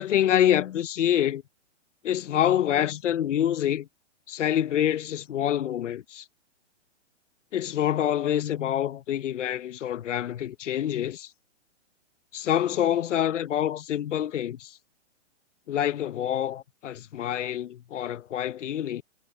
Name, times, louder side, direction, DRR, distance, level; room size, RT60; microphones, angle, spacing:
voice 1, 0.0-1.4 2.0-3.9 4.3-6.2 7.5-11.3 12.3-14.7 15.7-19.0, left 11 dB, 75° left, 0.9 m, -26 dB
hypercardioid pair, 155°, 36 cm